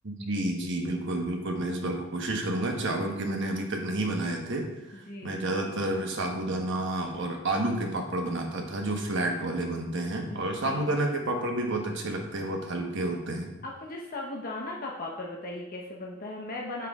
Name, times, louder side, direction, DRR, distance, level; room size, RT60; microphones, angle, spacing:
voice 1, 0.0-13.5, right 1 dB, 60° right, 2 dB, 1.2 m, -30 dB
voice 2, 4.9-5.4 10.3-10.9 13.6-16.9, left 2 dB, 45° left, -2 dB, 0.9 m, -37 dB
7.4 x 5.7 x 3.6 m, 0.95 s
head